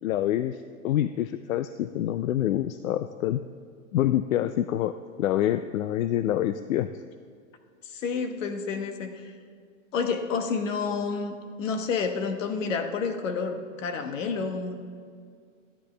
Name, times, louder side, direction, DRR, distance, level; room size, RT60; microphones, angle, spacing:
voice 1, 0.0-3.4 3.9-4.9 5.2-6.9, left 12 dB, 90° left, 12 dB, 0.5 m, -26 dB
voice 2, 7.8-9.3 9.9-14.8, left 5 dB, 70° left, 7 dB, 1.2 m, -30 dB
13.5 x 10.0 x 3.3 m, 2.2 s
hypercardioid pair, 145°, 39 cm